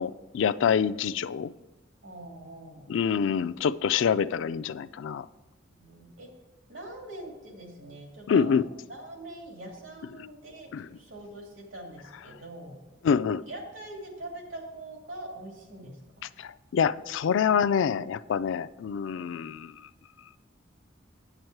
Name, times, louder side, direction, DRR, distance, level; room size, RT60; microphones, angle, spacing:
voice 1, 0.0-1.5 2.9-5.3 8.3-8.6 10.7-10.9 13.0-13.4 16.4-19.7, left 7 dB, 70° left, 14 dB, 0.3 m, -26 dB
voice 2, 2.0-2.9 5.7-6.3 6.7-12.8 13.5-16.3, right 1 dB, 85° right, 1 dB, 2.2 m, -43 dB
8.7 x 7.9 x 4.6 m, 1.1 s
head